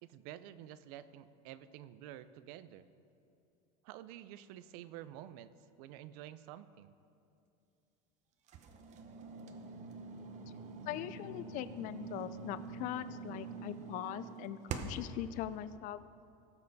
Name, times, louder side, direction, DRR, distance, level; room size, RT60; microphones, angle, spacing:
voice 1, 0.0-2.9 3.8-5.5 5.8-6.9, right 12 dB, 65° right, 14 dB, 0.6 m, -50 dB
freezer opening and closing, 8.5-15.1, right 5 dB, 35° right, 0.8 m, -45 dB
voice 2, 10.9-16.0, left 12 dB, 40° left, 14 dB, 0.4 m, -41 dB
18.0 x 6.8 x 4.1 m, 2.6 s
supercardioid pair, 155°, 21 cm